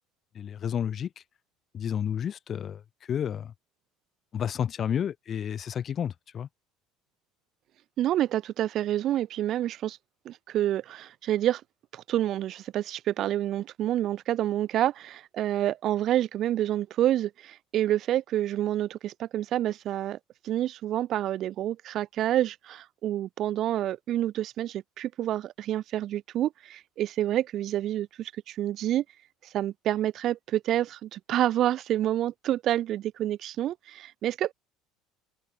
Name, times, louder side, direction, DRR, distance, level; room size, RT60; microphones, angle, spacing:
voice 1, 0.3-1.1 1.7-2.8 3.1-3.5 4.3-6.5, left 8 dB, 30° left, 1.4 m, -31 dB
voice 2, 8.0-10.0 10.3-11.6 11.9-20.2 20.4-29.0 29.5-34.5, right 12 dB, 40° right, 2.1 m, -28 dB
open air
cardioid pair, 165°, 0 cm